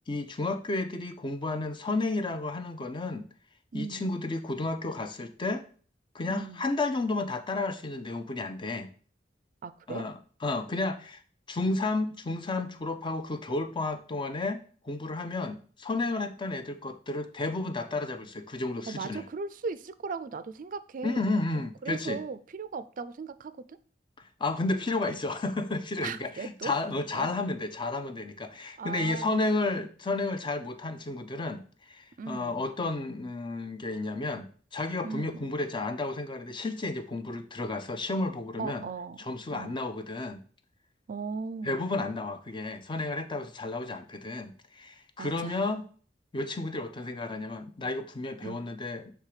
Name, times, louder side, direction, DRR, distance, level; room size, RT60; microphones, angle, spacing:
voice 1, 0.1-3.2 3.7-5.7 6.1-8.9 9.9-11.2 11.5-19.2 21.0-22.2 24.2-38.9 39.2-40.4 41.6-45.8 46.3-49.1, left 2 dB, 25° left, 0.6 m, -32 dB
voice 2, 3.7-4.2 6.3-6.7 9.6-10.0 18.9-21.3 21.8-23.8 26.0-26.8 27.1-27.3 28.8-29.5 32.2-32.6 35.0-35.5 38.6-39.2 39.5-39.8 41.1-41.8 45.2-45.7 48.4-48.6, right 5 dB, 45° right, 0.4 m, -38 dB
7.3 x 3.4 x 4.9 m
head